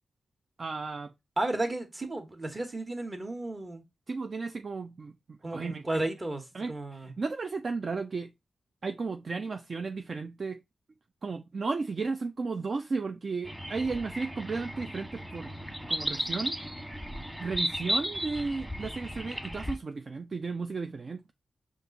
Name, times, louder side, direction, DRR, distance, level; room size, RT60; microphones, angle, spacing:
voice 1, 0.6-1.1 4.1-5.8 6.5-8.3 8.8-10.6 11.2-15.5 15.9-16.6 17.4-21.3, right 4 dB, 55° right, 0.4 m, -34 dB
voice 2, 1.4-3.8 5.4-7.1, right 2 dB, 35° right, 1.2 m, -33 dB
sound 1, 13.4-19.7, equal, 10° right, 1.2 m, -35 dB
5.2 x 2.5 x 3.9 m
cardioid pair, 60°, 0 cm